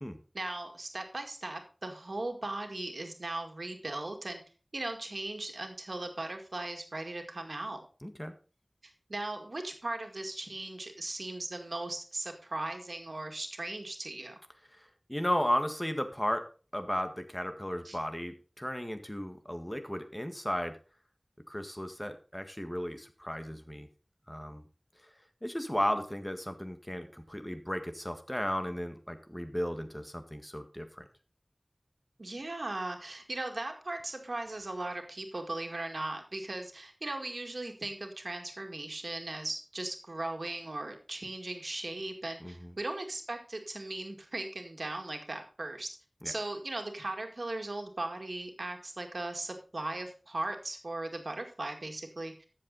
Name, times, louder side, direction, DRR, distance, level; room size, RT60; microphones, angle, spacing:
voice 1, 0.3-4.4 4.7-7.8 8.8-14.4 17.8-18.0 32.2-45.9 46.2-52.3, right 2 dB, 85° right, 4 dB, 2.0 m, -38 dB
voice 2, 8.0-8.3 14.8-16.5 16.7-20.8 21.5-23.9 24.3-24.6 25.4-31.1 42.4-42.7 46.2-46.3, equal, 15° left, 7 dB, 1.7 m, -35 dB
13.5 x 7.6 x 4.1 m, 0.37 s
wide cardioid pair, 40°, 0 cm